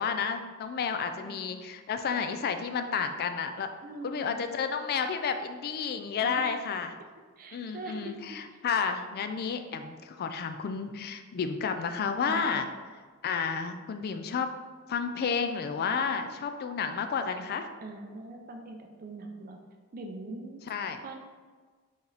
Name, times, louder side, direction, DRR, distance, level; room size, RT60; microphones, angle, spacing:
voice 1, 0.0-3.7 4.0-6.9 7.5-12.7 13.2-14.5 14.9-17.7 20.7-21.0, left 6 dB, 45° left, 8 dB, 0.3 m, -31 dB
voice 2, 3.8-4.5 6.2-6.6 7.4-8.2 12.2-12.7 15.9-16.4 17.8-19.6 19.9-20.6 21.0-21.1, right 2 dB, 40° right, 4 dB, 0.5 m, -42 dB
4.5 x 3.0 x 3.3 m, 1.5 s
head